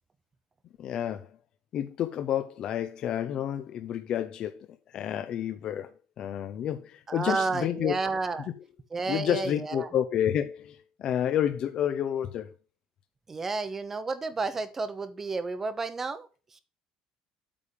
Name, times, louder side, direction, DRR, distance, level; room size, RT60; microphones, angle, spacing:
voice 1, 0.8-1.3 1.7-8.0 9.1-12.5, left 10 dB, 40° left, 0.5 m, -30 dB
voice 2, 7.1-8.5 8.9-9.9 13.3-16.6, right 4 dB, 15° right, 0.7 m, -31 dB
8.4 x 3.6 x 6.6 m
cardioid pair, 165°, 2 cm